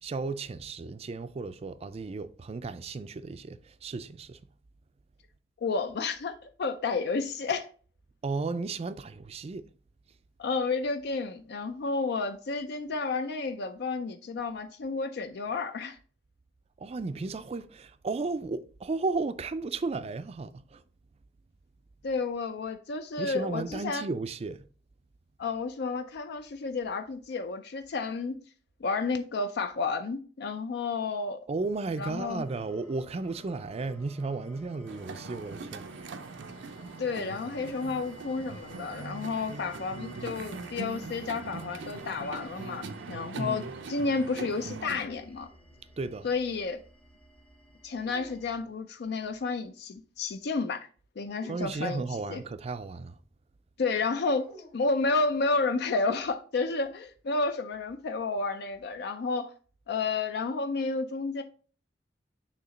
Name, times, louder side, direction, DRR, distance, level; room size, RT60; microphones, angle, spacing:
voice 1, 0.0-4.4 8.2-9.7 16.8-20.8 23.2-24.6 31.5-36.1 43.3-43.7 46.0-46.3 51.5-53.2, right 3 dB, 35° right, 0.4 m, -34 dB
voice 2, 5.6-7.7 10.4-16.0 22.0-24.1 25.4-28.4 28.8-31.5 32.0-32.4 37.0-45.5 46.2-46.8 47.8-50.9 51.2-52.0 52.3-52.4 53.8-54.5 54.7-59.5 59.9-61.4, left 4 dB, 60° left, 0.4 m, -31 dB
sound 1, 32.1-48.6, equal, 5° left, 0.7 m, -55 dB
sound 2, 34.9-45.1, right 3 dB, 90° right, 0.6 m, -41 dB
sound 3, 45.0-46.2 48.0-48.8 51.2-52.3 54.4-55.6, left 1 dB, 45° left, 1.7 m, -55 dB
6.7 x 2.9 x 5.0 m
head